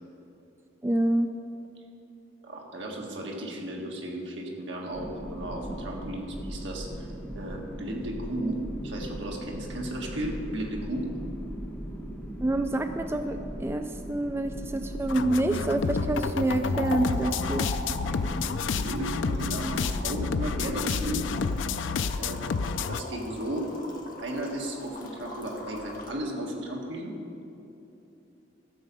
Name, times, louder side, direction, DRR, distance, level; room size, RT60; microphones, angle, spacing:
voice 1, 0.8-1.3 12.4-17.7, right 1 dB, 15° right, 7 dB, 0.3 m, -27 dB
voice 2, 2.4-7.1 7.4-11.1 18.6-21.3 22.1-22.5 22.9-23.7 24.2-27.1, right 1 dB, 70° right, 0 dB, 1.7 m, -35 dB
sound 1, 4.9-21.5, right 1 dB, 10° left, 1.1 m, -39 dB
sound 2, 15.1-23.0, left 5 dB, 80° left, 0.4 m, -30 dB
sound 3, 15.8-26.1, left 2 dB, 45° left, 1.3 m, -41 dB
13.0 x 7.3 x 5.4 m, 2.9 s
head